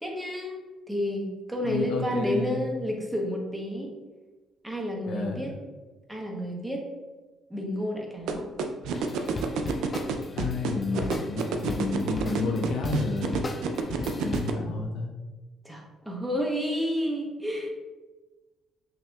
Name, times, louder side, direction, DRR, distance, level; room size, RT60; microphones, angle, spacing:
voice 1, 0.0-0.6 0.9-3.9 4.6-5.5 6.1-6.8 7.5-8.5 15.6-17.7, equal, 5° right, -1 dB, 0.9 m, -30 dB
voice 2, 1.6-2.6 5.1-5.5 10.4-13.5 14.2-15.1, left 3 dB, 80° left, 1 dB, 0.7 m, -30 dB
sound 1, 8.3-14.5, right 6 dB, 80° right, 0.4 m, -28 dB
sound 2, 8.9-14.5, left 2 dB, 30° left, 0.4 m, -38 dB
5.9 x 2.8 x 2.3 m, 1.2 s
cardioid pair, 85°, 0 cm